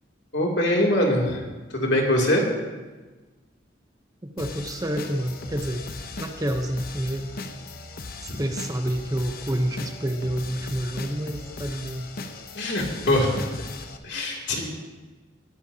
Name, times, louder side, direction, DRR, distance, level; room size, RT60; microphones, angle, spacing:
voice 1, 0.3-1.4 1.7-2.5 8.3-8.4 12.5-13.7 14.0-14.7, left 1 dB, 75° left, -1 dB, 2.9 m, -23 dB
sound 1, 4.4-14.0, left 3 dB, 55° left, 0.9 m, -38 dB
voice 2, 4.4-5.8 6.2-7.3 8.2-12.1, right 1 dB, 20° right, 5 dB, 0.9 m, -28 dB
20.0 x 13.5 x 2.9 m, 1.3 s
head